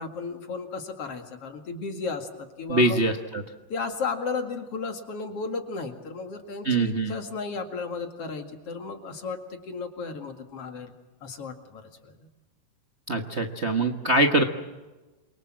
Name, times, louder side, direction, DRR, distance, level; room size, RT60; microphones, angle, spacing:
voice 1, 0.0-3.1 3.7-10.9 11.2-12.1, left 4 dB, 50° left, 6 dB, 2.9 m, -34 dB
voice 2, 2.7-3.4 6.6-7.1 13.1-14.4, right 2 dB, 75° right, 3 dB, 0.6 m, -23 dB
28.5 x 23.5 x 7.6 m, 1.2 s
omnidirectional pair, 3.7 m